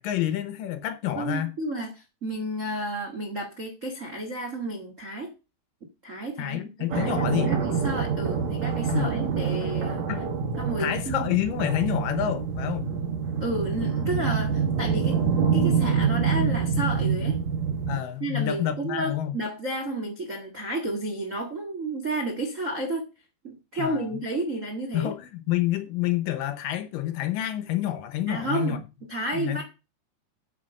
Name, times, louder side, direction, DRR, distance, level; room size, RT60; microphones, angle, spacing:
voice 1, 0.0-1.5 6.4-7.6 8.9-9.1 10.1-10.2 10.8-12.9 15.1-15.2 17.9-19.3 23.8-24.1 24.9-28.8 29.3-29.6, left 12 dB, 75° left, 2.2 m, -28 dB
voice 2, 1.1-5.3 6.0-10.0 10.6-11.3 13.4-15.2 15.5-17.4 18.2-23.1 23.4-25.1 28.3-28.7 29.1-29.6, right 1 dB, 80° right, 0.7 m, -31 dB
sound 1, 6.9-18.0, right 6 dB, 50° right, 2.7 m, -26 dB
8.3 x 6.4 x 6.4 m
omnidirectional pair, 4.5 m